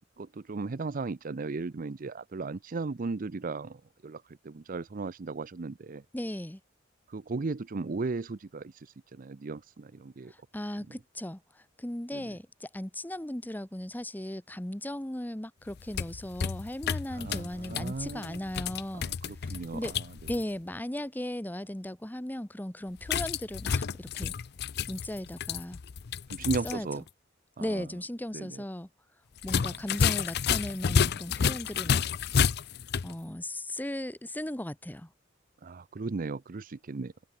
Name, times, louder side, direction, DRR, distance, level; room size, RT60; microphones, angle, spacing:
voice 1, 0.2-6.0 7.1-10.3 10.9-11.0 12.1-12.4 17.1-18.5 18.9-20.1 26.3-27.0 27.6-27.9 28.3-28.6 29.7-29.8 35.6-37.1, right 3 dB, 45° right, 0.5 m, -36 dB
voice 2, 6.1-6.6 10.5-11.4 11.8-19.1 19.5-19.9 20.3-24.3 24.9-25.8 26.6-26.9 27.6-28.9 29.4-32.0 33.0-35.1, left 1 dB, 10° left, 1.0 m, -37 dB
sound 1, 15.7-20.4 23.0-26.8 27.1-27.2 29.4-33.1, left 6 dB, 60° left, 0.5 m, -30 dB
head